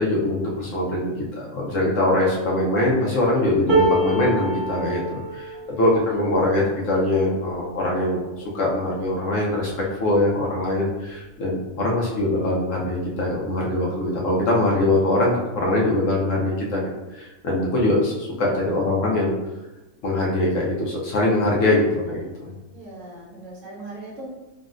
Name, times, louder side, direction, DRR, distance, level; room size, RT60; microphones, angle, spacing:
voice 1, 0.0-8.2 8.5-9.7 10.0-16.9 17.1-19.3 20.0-22.5, left 1 dB, 70° left, -4 dB, 1.0 m, -22 dB
sound 1, 3.7-9.8 10.4-10.6 10.9-11.7 12.6-12.7, right 1 dB, 35° right, 0.4 m, -28 dB
voice 2, 6.0-6.9 22.7-24.3, right 2 dB, 65° right, -4 dB, 1.1 m, -40 dB
3.8 x 2.1 x 2.4 m, 1.1 s
omnidirectional pair, 1.5 m